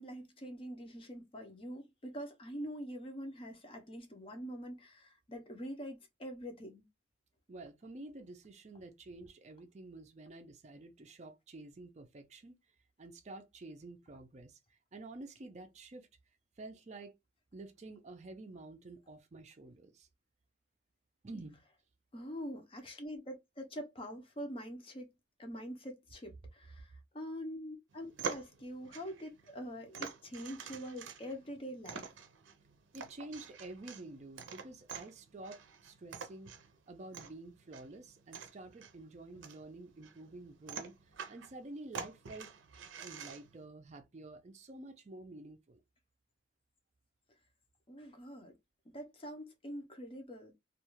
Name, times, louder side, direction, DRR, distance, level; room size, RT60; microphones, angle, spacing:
voice 1, 0.0-6.9 22.1-25.1 25.4-32.1 47.9-48.6 48.9-50.5, equal, 30° left, 0.6 m, -44 dB
voice 2, 7.5-12.6 13.0-16.1 16.6-17.1 17.5-20.1 21.2-21.6 32.9-36.5 36.9-40.9 41.3-42.5 43.0-45.8, right 2 dB, 35° right, 0.4 m, -49 dB
sound 1, 27.9-43.7, right 6 dB, 90° right, 0.5 m, -47 dB
2.4 x 2.2 x 2.9 m
head